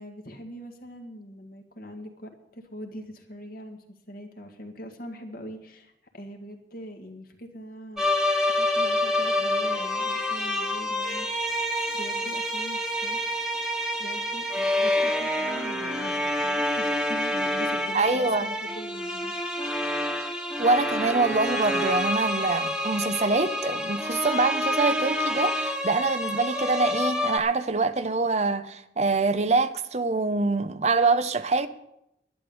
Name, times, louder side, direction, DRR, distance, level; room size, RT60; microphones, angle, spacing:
voice 1, 0.0-8.1 8.5-11.6 11.9-13.2 14.0-19.4, equal, 55° left, 1.8 m, -42 dB
sound 1, 8.0-27.4, left 1 dB, 5° right, 1.3 m, -27 dB
voice 2, 17.9-18.5 20.6-31.7, right 3 dB, 40° right, 0.7 m, -25 dB
11.5 x 10.5 x 7.0 m
head